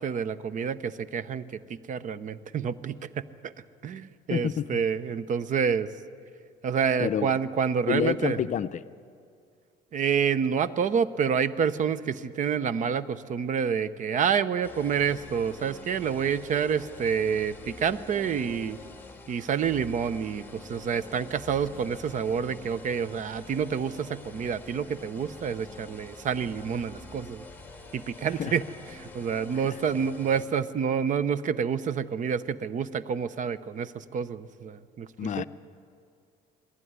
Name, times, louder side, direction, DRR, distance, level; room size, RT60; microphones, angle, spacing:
voice 1, 0.0-3.5 3.8-5.9 6.6-8.4 9.9-18.8 19.3-27.4 27.9-28.6 28.9-35.4, right 7 dB, 50° right, 15 dB, 0.8 m, -28 dB
voice 2, 4.3-4.7 7.0-7.3 7.9-8.8 28.4-28.6 29.7-29.8 35.2-35.4, left 9 dB, 45° left, 13 dB, 0.6 m, -28 dB
sound 1, 14.6-30.5, left 2 dB, 10° left, 2.2 m, -46 dB
20.5 x 16.0 x 9.6 m, 2.3 s
cardioid pair, 110°, 17 cm